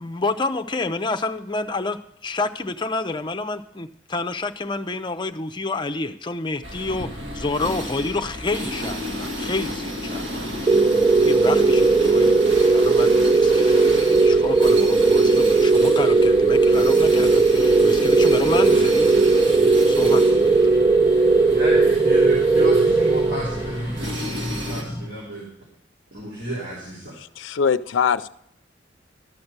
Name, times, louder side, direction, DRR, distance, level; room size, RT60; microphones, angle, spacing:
voice 1, 0.0-10.7 11.2-19.1 19.9-20.6, left 3 dB, 25° left, 0.6 m, -29 dB
sound 1, 6.6-24.8, equal, 75° right, 1.9 m, -31 dB
sound 2, 10.7-23.8, right 3 dB, 20° right, 0.3 m, -17 dB
sound 3, 16.9-25.1, left 1 dB, 10° left, 1.7 m, -36 dB
voice 2, 21.5-24.4 24.7-25.5 26.1-27.2, right 1 dB, 55° right, 3.5 m, -32 dB
voice 3, 27.2-28.3, left 6 dB, 90° left, 0.5 m, -22 dB
12.5 x 6.0 x 6.6 m
head